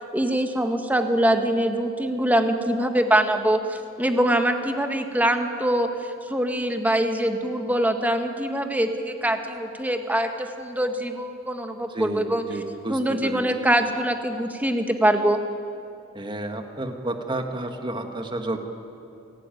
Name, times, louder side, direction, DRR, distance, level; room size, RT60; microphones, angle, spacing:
voice 1, 0.1-12.4 12.9-15.4, right 1 dB, 10° right, 5 dB, 1.5 m, -23 dB
voice 2, 11.9-13.4 16.1-18.6, right 1 dB, 25° right, 5 dB, 1.8 m, -31 dB
27.5 x 17.0 x 9.2 m, 2.6 s
head